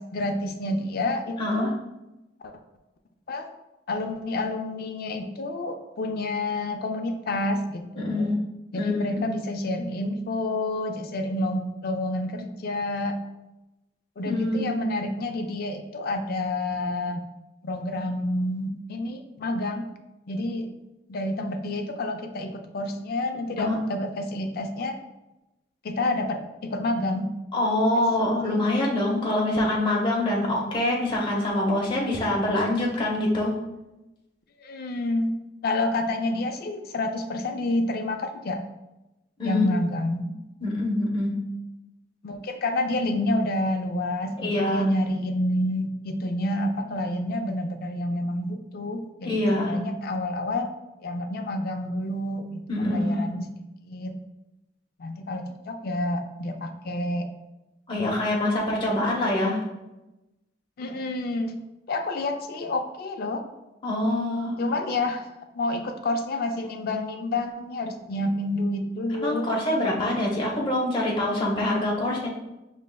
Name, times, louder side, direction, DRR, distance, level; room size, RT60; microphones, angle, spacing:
voice 1, 0.0-1.8 2.4-2.5 3.3-3.5 3.9-8.3 8.7-13.2 14.2-17.2 17.6-19.9 20.3-20.7 21.1-25.0 25.8-27.3 27.9-28.0 28.4-28.6 34.6-35.4 35.6-38.6 39.4-40.2 42.2-50.7 51.0-53.5 53.8-54.1 55.0-57.3 60.8-61.6 61.9-63.4 64.6-65.3 65.6-69.5, left 1 dB, 55° left, 5 dB, 0.4 m, -29 dB
voice 2, 1.4-1.8 8.0-8.4 8.7-9.2 14.2-14.9 23.6-23.8 27.5-33.6 39.4-39.6 40.6-41.4 44.4-44.8 49.2-49.8 52.7-53.2 57.9-59.6 63.8-64.6 69.2-72.3, left 1 dB, 25° left, -3 dB, 0.9 m, -25 dB
5.3 x 3.1 x 2.2 m, 0.99 s
head